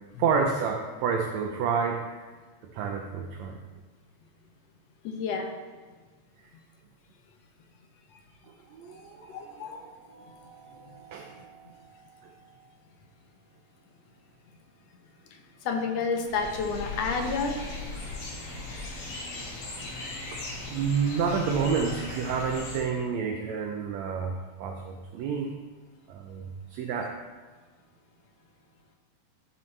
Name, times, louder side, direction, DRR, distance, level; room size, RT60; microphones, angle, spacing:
voice 1, 0.2-2.0 2.7-3.6 8.7-12.3 20.7-25.5 26.1-27.1, right 6 dB, 75° right, 3 dB, 1.8 m, -30 dB
voice 2, 5.0-5.5 9.3-9.8 15.7-17.6, left 4 dB, 65° left, 3 dB, 1.9 m, -30 dB
sound 1, 16.3-22.8, left 3 dB, 85° left, 3.7 m, -38 dB
14.5 x 7.3 x 3.3 m, 1.4 s
omnidirectional pair, 3.4 m